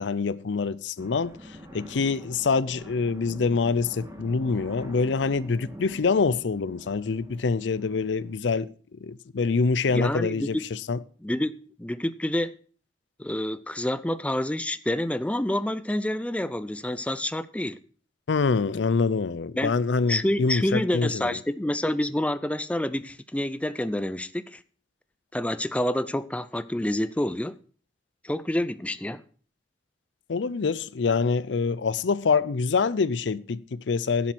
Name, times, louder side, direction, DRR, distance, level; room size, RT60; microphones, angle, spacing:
voice 1, 0.0-11.0 18.3-21.4 30.3-34.3, left 4 dB, 80° left, 0.5 m, -25 dB
sound 1, 1.0-8.4, equal, 15° right, 2.4 m, -45 dB
voice 2, 9.9-10.6 11.2-11.5 11.8-12.5 13.2-17.8 19.6-19.7 20.1-24.6 25.3-27.6 28.2-29.2, left 1 dB, 5° left, 0.5 m, -28 dB
11.0 x 7.5 x 5.9 m
head